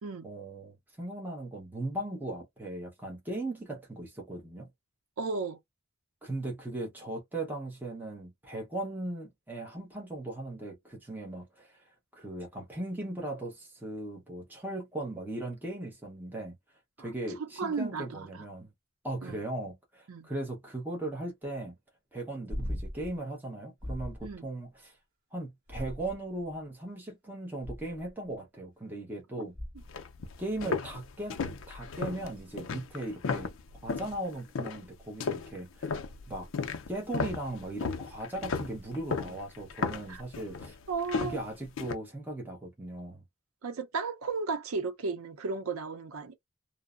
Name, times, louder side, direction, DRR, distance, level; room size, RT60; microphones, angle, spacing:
voice 1, 0.2-4.7 6.2-11.8 12.1-16.5 17.0-18.7 19.0-21.7 22.1-25.0 25.3-29.5 30.4-31.4 31.7-33.5 33.8-35.9 36.3-36.5 36.9-40.7 41.2-43.2, right 1 dB, 10° right, 0.8 m, -38 dB
voice 2, 5.2-5.6 17.0-17.1 17.6-18.4 19.2-19.4 20.1-20.3 24.2-24.5 29.4-29.5 40.1-40.2 40.9-41.4 43.6-46.3, right 4 dB, 90° right, 0.6 m, -34 dB
sound 1, 22.5-23.2 23.8-24.3 25.7-26.4 27.6-28.1 29.5-30.0 32.4-32.5, equal, 40° right, 1.0 m, -38 dB
sound 2, 29.8-34.2 34.6-34.9 35.2-41.9, left 4 dB, 65° left, 0.4 m, -35 dB
2.6 x 2.0 x 2.3 m
head